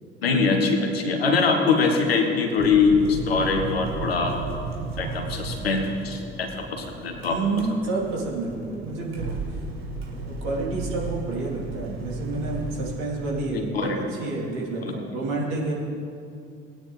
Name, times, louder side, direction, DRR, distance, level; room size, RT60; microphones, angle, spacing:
voice 1, 0.2-4.3 5.0-7.3 13.5-14.0 14.8-14.9, left 4 dB, 85° left, 3 dB, 1.5 m, -23 dB
sound 1, 2.6-13.0, right 3 dB, 85° right, 1.6 m, -34 dB
voice 2, 7.2-9.3 10.2-15.7, right 3 dB, 65° right, -4 dB, 3.4 m, -29 dB
19.0 x 9.6 x 3.3 m, 2.5 s
hypercardioid pair, 60°, 29 cm